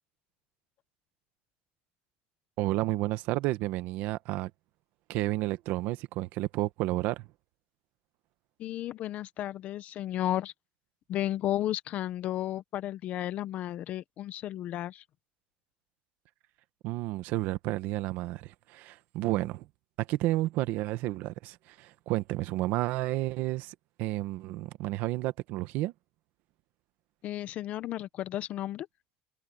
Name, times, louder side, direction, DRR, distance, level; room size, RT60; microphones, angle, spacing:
voice 1, 2.6-4.5 5.1-7.3 16.8-19.7 20.0-25.9, right 17 dB, 65° right, 1.2 m, -31 dB
voice 2, 8.6-10.5 11.1-15.0 27.2-28.9, left 13 dB, 45° left, 1.0 m, -33 dB
cardioid pair, 145°, 3 cm